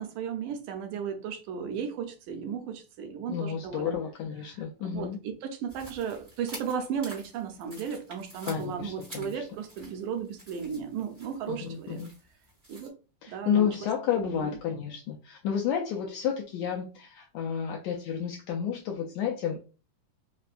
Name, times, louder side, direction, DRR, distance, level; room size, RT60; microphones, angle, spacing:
voice 1, 0.0-4.0 4.8-12.0 12.7-12.9 13.3-13.8 14.2-14.6, right 7 dB, 80° right, 2.0 m, -35 dB
voice 2, 3.3-5.2 8.4-9.5 11.5-12.1 13.2-19.6, left 8 dB, 85° left, 1.6 m, -31 dB
sound 1, 5.7-12.9, right 1 dB, 15° right, 0.5 m, -49 dB
5.1 x 2.2 x 2.4 m
omnidirectional pair, 3.8 m